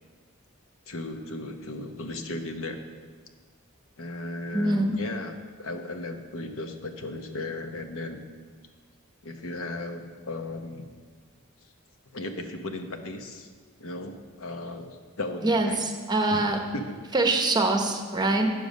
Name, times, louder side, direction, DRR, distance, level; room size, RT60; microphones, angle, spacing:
voice 1, 0.9-2.8 4.0-8.2 9.2-10.9 12.1-13.5 13.8-15.8 16.3-16.4 16.7-17.0, left 2 dB, 65° left, 5 dB, 0.9 m, -36 dB
voice 2, 4.5-5.0 15.4-16.6 17.1-18.5, right 2 dB, 20° right, 4 dB, 0.8 m, -24 dB
9.1 x 6.9 x 6.4 m, 1.5 s
head